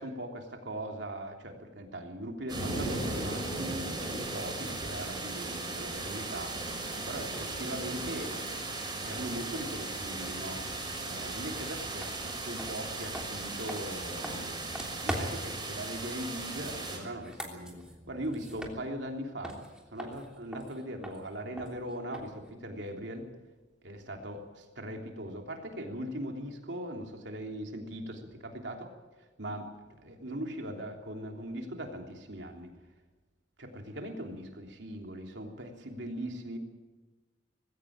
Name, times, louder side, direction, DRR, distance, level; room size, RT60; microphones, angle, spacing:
voice 1, 0.0-3.9 4.3-6.6 7.0-8.5 8.9-10.6 11.0-14.7 15.0-19.5 19.9-23.3 23.8-28.9 29.4-29.7 30.0-32.7 33.6-36.6, right 1 dB, 70° right, 3 dB, 3.3 m, -40 dB
sound 1, 2.5-17.0, right 2 dB, 25° right, 6.3 m, -37 dB
sound 2, 12.0-12.1 12.5-15.6 17.1-19.2 19.4-22.5, equal, 5° right, 3.2 m, -41 dB
20.5 x 16.5 x 8.8 m, 1.2 s
head